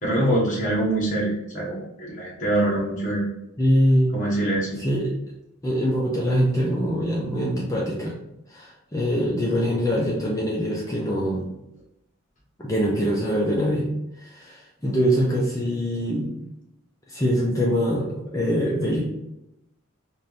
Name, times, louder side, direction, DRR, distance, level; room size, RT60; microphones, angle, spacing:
voice 1, 0.0-3.2 4.1-4.8, right 1 dB, 35° left, -6 dB, 1.1 m, -24 dB
voice 2, 3.6-4.2 4.8-5.1 5.6-8.2 8.5-11.5 12.6-13.9 14.2-16.3 17.1-19.1, equal, 15° left, -3 dB, 0.5 m, -23 dB
4.1 x 2.6 x 3.3 m, 0.85 s
head